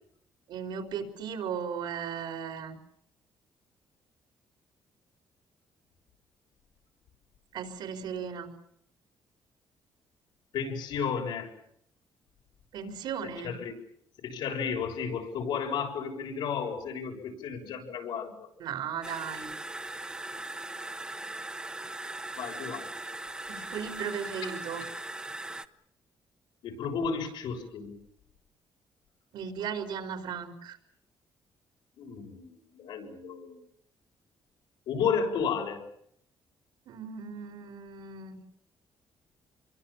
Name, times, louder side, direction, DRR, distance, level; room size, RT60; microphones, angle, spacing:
voice 1, 0.5-2.7 7.5-8.5 12.7-13.5 18.6-19.5 23.5-24.8 29.3-30.8 36.9-38.4, right 7 dB, 80° right, 5 dB, 4.7 m, -36 dB
voice 2, 10.5-11.5 13.4-13.7 14.2-18.5 22.4-22.9 26.6-28.0 32.0-33.6 34.9-35.8, left 6 dB, 80° left, 2 dB, 7.1 m, -33 dB
sound 1, 19.0-25.6, right 2 dB, 10° right, 1.1 m, -39 dB
27.5 x 23.0 x 7.4 m, 0.69 s
cardioid pair, 155°, 8 cm